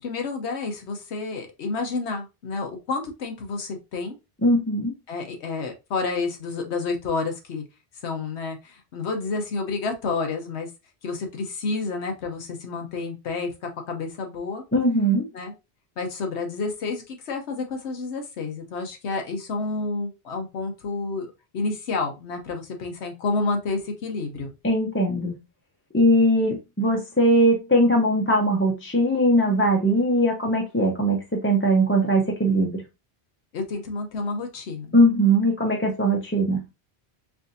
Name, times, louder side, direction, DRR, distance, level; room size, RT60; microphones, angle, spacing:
voice 1, 0.0-4.2 5.1-7.6 8.0-10.7 11.0-14.6 15.3-15.5 16.0-21.3 21.5-24.5 33.5-35.0, left 3 dB, 90° left, 4 dB, 1.1 m, -30 dB
voice 2, 4.4-4.9 14.7-15.2 24.6-25.3 25.9-32.8 34.9-36.6, right 1 dB, 15° left, -1 dB, 0.5 m, -20 dB
4.8 x 2.5 x 2.6 m, 0.25 s
omnidirectional pair, 1.1 m